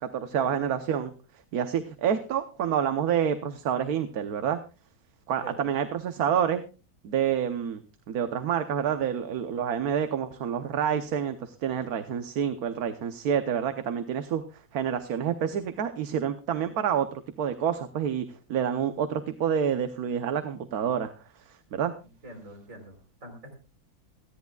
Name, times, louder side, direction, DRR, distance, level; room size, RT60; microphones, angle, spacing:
voice 1, 0.0-1.1 1.5-4.6 5.3-6.6 7.0-7.8 8.1-14.4 14.7-17.1 17.4-21.1 21.5-21.9, right 8 dB, 75° right, 9 dB, 1.4 m, -28 dB
voice 2, 22.2-23.5, right 1 dB, 60° right, 3 dB, 4.3 m, -45 dB
27.5 x 10.5 x 2.3 m, 0.32 s
omnidirectional pair, 1.6 m